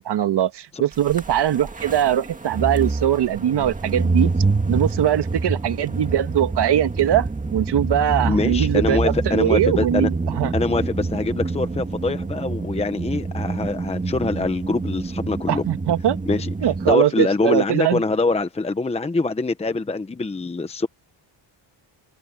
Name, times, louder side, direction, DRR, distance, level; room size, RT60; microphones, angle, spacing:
voice 1, 0.0-4.3 4.7-10.5 15.5-16.2 16.6-18.0, right 11 dB, 60° right, 1.8 m, -21 dB
sound 1, 1.1-16.9, right 3 dB, 15° right, 2.1 m, -26 dB
voice 2, 8.3-10.1 10.5-15.6 16.3-16.5 16.9-20.9, left 3 dB, 15° left, 0.9 m, -24 dB
cardioid pair, 130°, 45 cm